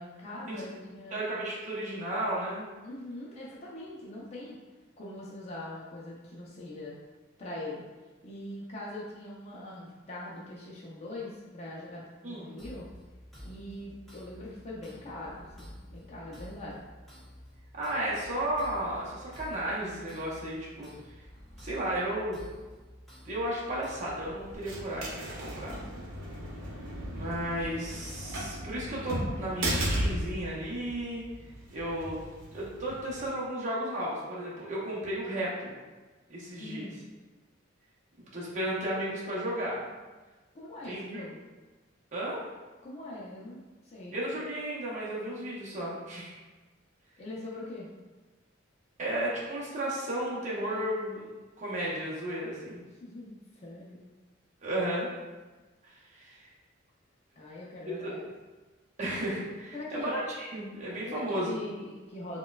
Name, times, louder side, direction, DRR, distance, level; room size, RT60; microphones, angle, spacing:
voice 1, 0.0-1.2 2.8-4.6 5.0-6.9 7.4-7.8 8.2-12.9 13.4-16.9 36.6-37.0 40.5-41.4 42.8-44.1 47.2-47.9 53.0-54.0 57.4-58.2 59.7-60.1 61.1-62.4, left 1 dB, 35° left, -6 dB, 0.5 m, -42 dB
voice 2, 1.1-2.7 12.2-12.5 17.7-20.9 21.6-22.4 23.2-25.8 27.1-31.2 31.7-32.2 32.5-35.7 36.3-36.9 38.2-39.8 40.8-41.2 42.1-42.5 44.1-46.3 49.0-51.2 51.6-52.8 54.6-55.1 55.8-56.4 58.0-58.1 59.0-61.5, right 1 dB, 40° right, -7 dB, 0.7 m, -34 dB
sound 1, 12.6-24.5, equal, ahead, 1.0 m, -50 dB
sound 2, 23.7-33.3, right 1 dB, 70° right, 0.8 m, -36 dB
4.2 x 2.2 x 2.3 m, 1.3 s
head